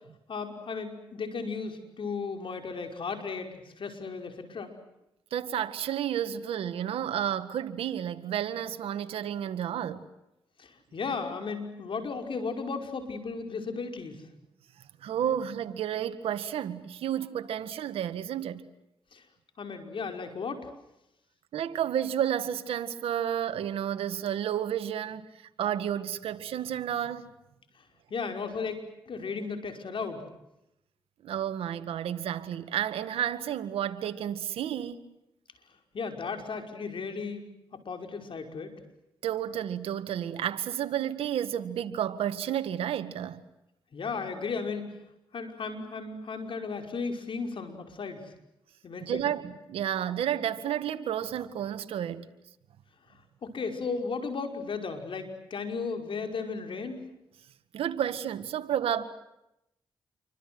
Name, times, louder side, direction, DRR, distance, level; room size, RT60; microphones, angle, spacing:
voice 1, 0.3-4.7 10.6-14.2 19.1-19.2 19.6-20.7 28.1-28.8 29.1-30.3 35.9-37.4 37.7-38.7 43.9-44.9 45.3-48.3 48.8-49.2 53.4-57.0, left 4 dB, 65° left, 5.5 m, -35 dB
voice 2, 5.3-10.0 15.0-18.6 21.5-27.3 31.2-35.1 39.2-43.4 49.1-52.3 57.7-59.1, right 10 dB, 90° right, 1.8 m, -31 dB
28.5 x 25.0 x 8.0 m
cardioid pair, 60°, 9 cm